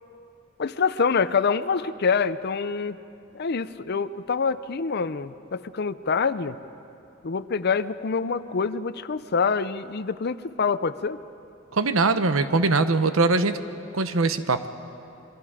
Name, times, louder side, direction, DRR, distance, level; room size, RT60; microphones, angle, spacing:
voice 1, 0.6-3.0 3.3-6.6 7.2-11.2, left 5 dB, 55° left, 14 dB, 0.6 m, -26 dB
voice 2, 11.7-13.6 13.9-14.7, right 3 dB, 80° right, 10 dB, 0.9 m, -22 dB
26.5 x 23.5 x 5.0 m, 2.8 s
head